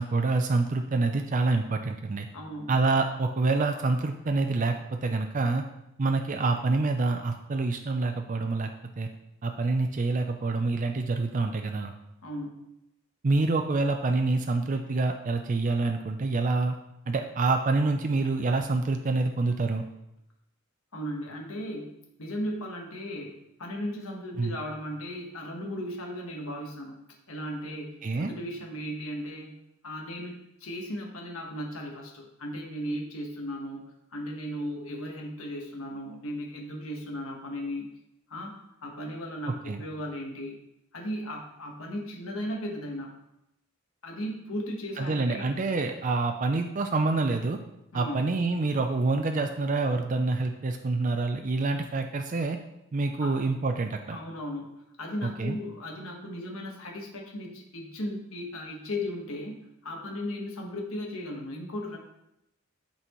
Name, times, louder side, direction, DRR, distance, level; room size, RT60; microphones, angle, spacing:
voice 1, 0.0-2.3 2.7-5.6 6.0-8.7 9.0-9.1 9.4-11.9 13.2-16.8 17.1-19.8 24.4-24.5 28.0-28.3 39.7-39.8 45.0-47.6 47.9-52.6 52.9-54.2 55.2-55.6, right 3 dB, 40° right, 5 dB, 0.4 m, -27 dB
voice 2, 2.3-2.7 12.2-12.6 20.9-21.9 22.2-27.0 27.3-29.5 29.8-37.9 38.3-40.6 40.9-43.1 44.0-45.4 47.9-48.3 53.2-53.4 54.1-59.6 59.8-62.0, equal, 90° left, 0 dB, 1.3 m, -36 dB
11.0 x 4.2 x 3.1 m, 0.85 s
head